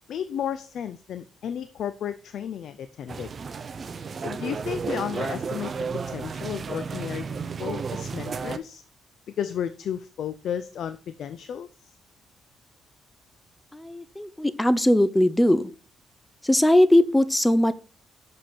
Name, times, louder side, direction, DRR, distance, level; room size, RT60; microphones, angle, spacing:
voice 1, 0.1-3.3 4.2-5.7 6.1-7.3 7.6-8.8 9.4-11.7, left 9 dB, 70° left, 12 dB, 0.5 m, -33 dB
sound 1, 3.1-8.6, right 5 dB, 45° right, 0.7 m, -33 dB
voice 2, 13.7-15.7 16.4-17.7, left 1 dB, 10° left, 15 dB, 0.6 m, -20 dB
6.7 x 5.3 x 5.7 m, 0.37 s
cardioid pair, 90°, 0 cm